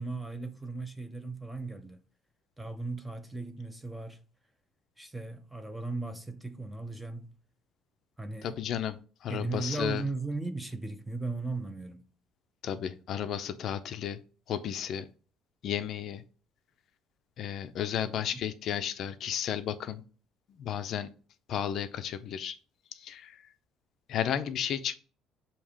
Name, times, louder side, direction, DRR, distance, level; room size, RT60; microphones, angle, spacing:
voice 1, 0.0-2.0 2.6-4.2 5.0-7.3 8.2-8.6 9.3-12.0 18.0-18.4, right 3 dB, 5° right, 0.6 m, -37 dB
voice 2, 8.4-10.0 12.6-14.2 14.5-15.1 15.6-16.2 17.4-20.0 20.6-21.1 21.5-22.6 23.0-23.4 24.1-25.0, left 9 dB, 45° left, 0.5 m, -33 dB
7.2 x 2.9 x 4.8 m
cardioid pair, 165°, 0 cm